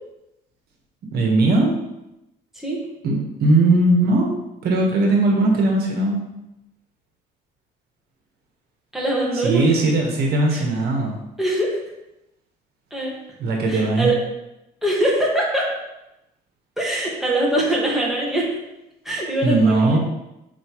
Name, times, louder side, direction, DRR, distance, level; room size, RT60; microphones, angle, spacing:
voice 1, 1.1-1.7 3.0-4.3 4.6-6.2 9.3-11.2 13.4-14.1 19.4-20.0, right 2 dB, 70° right, 0 dB, 1.4 m, -19 dB
voice 2, 8.9-9.6 10.5-10.6 11.4-11.8 12.9-13.1 13.7-14.2 14.8-15.7 16.8-18.5 19.0-20.0, right 1 dB, ahead, -4 dB, 1.8 m, -22 dB
6.6 x 4.5 x 3.1 m, 0.90 s
cardioid pair, 110°, 17 cm